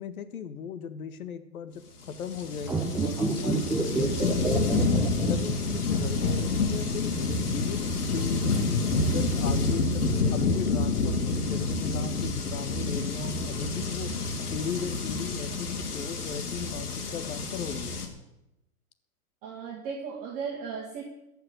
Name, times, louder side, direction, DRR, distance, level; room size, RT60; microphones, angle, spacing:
voice 1, 0.0-4.9 5.3-7.1 7.5-7.8 8.1-10.0 10.3-14.1 14.5-18.0, left 7 dB, 70° left, 10 dB, 1.6 m, -37 dB
Rainy night, 2.0-18.1, left 3 dB, 85° left, 3.0 m, -28 dB
sound 1, 2.6-6.0 6.3-6.4, right 4 dB, 5° right, 0.5 m, -28 dB
voice 2, 19.4-21.1, right 6 dB, 35° right, -1 dB, 2.2 m, -36 dB
15.5 x 5.7 x 9.7 m, 0.92 s
hypercardioid pair, 135°, 45 cm